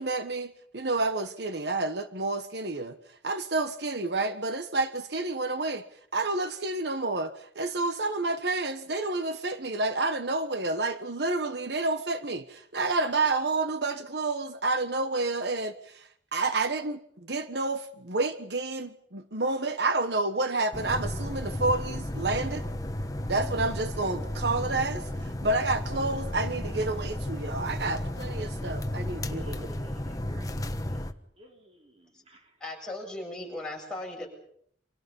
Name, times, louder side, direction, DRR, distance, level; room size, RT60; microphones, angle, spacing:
voice 1, 0.0-5.8 6.1-22.6 23.3-29.7, right 2 dB, 65° right, 1.3 m, -29 dB
sound 1, 20.7-31.1, left 1 dB, 20° left, 1.3 m, -33 dB
voice 2, 29.3-32.6, equal, 35° right, 3.7 m, -53 dB
voice 3, 32.6-34.3, left 2 dB, 5° left, 7.8 m, -37 dB
29.5 x 26.5 x 5.5 m
head